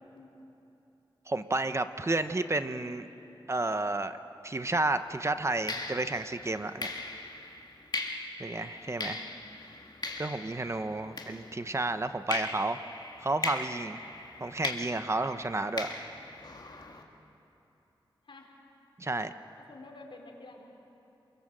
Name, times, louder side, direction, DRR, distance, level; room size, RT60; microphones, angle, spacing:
voice 1, 1.3-3.1 3.5-4.2 4.4-6.9 8.4-9.3 10.2-12.8 13.2-14.0 14.4-16.1 19.0-19.3, right 2 dB, 30° right, 9 dB, 0.9 m, -31 dB
voice 2, 2.0-3.0 8.8-9.5 11.1-11.7 18.2-18.5 19.6-20.6, left 2 dB, 70° left, 1 dB, 4.2 m, -51 dB
sound 1, 4.5-4.7 5.7-11.8 12.3-17.0, left 2 dB, 55° left, 2.3 m, -39 dB
28.0 x 23.0 x 7.6 m, 2.9 s
wide cardioid pair, 90°, 9 cm